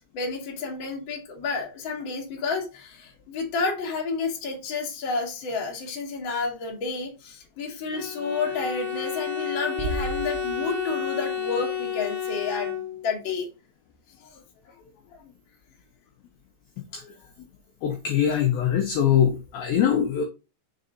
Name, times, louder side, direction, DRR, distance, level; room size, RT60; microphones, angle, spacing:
voice 1, 0.1-13.5, left 4 dB, 45° left, -1 dB, 1.7 m, -30 dB
Bowed string instrument, 7.9-13.2, left 7 dB, 65° left, 2.6 m, -31 dB
Bass drum, 9.8-11.2, right 4 dB, 80° right, 2.6 m, -34 dB
voice 2, 17.8-20.2, left 9 dB, 80° left, 3 dB, 2.1 m, -23 dB
6.5 x 4.0 x 3.8 m, 0.29 s
omnidirectional pair, 5.5 m